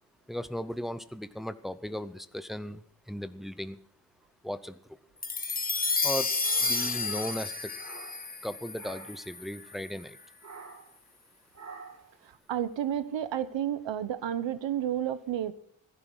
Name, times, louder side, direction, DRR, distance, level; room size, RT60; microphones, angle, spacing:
voice 1, 0.3-2.8 3.1-3.8 4.4-4.8 6.0-6.3 6.6-7.7 8.4-10.2, left 1 dB, ahead, 12 dB, 0.6 m, -36 dB
sound 1, 5.2-9.7, left 4 dB, 20° left, 1.2 m, -31 dB
sound 2, 6.0-8.5 8.7-9.3 10.4-11.0 11.5-12.1, right 4 dB, 35° right, 2.5 m, -47 dB
voice 2, 12.5-15.5, right 10 dB, 75° right, 15 dB, 1.0 m, -31 dB
15.0 x 11.0 x 6.3 m, 0.65 s
wide cardioid pair, 140°, 45 cm